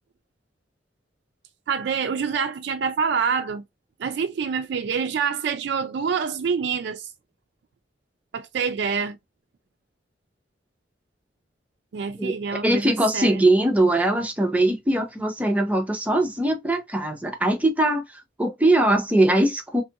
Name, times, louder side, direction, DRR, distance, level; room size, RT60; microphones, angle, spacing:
voice 1, 1.7-3.6 4.0-7.1 8.3-9.2 11.9-13.4, right 6 dB, 65° right, 0.3 m, -26 dB
voice 2, 12.6-19.8, right 1 dB, 10° right, 0.6 m, -21 dB
2.6 x 2.4 x 2.7 m
head